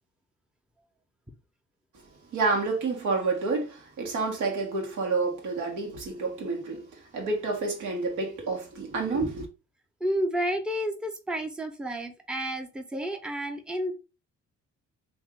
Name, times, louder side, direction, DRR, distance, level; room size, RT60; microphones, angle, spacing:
voice 1, 2.3-9.5, right 3 dB, 85° right, 1.3 m, -29 dB
voice 2, 10.0-13.9, equal, 5° right, 0.7 m, -31 dB
2.9 x 2.7 x 3.6 m
cardioid pair, 90°, 30 cm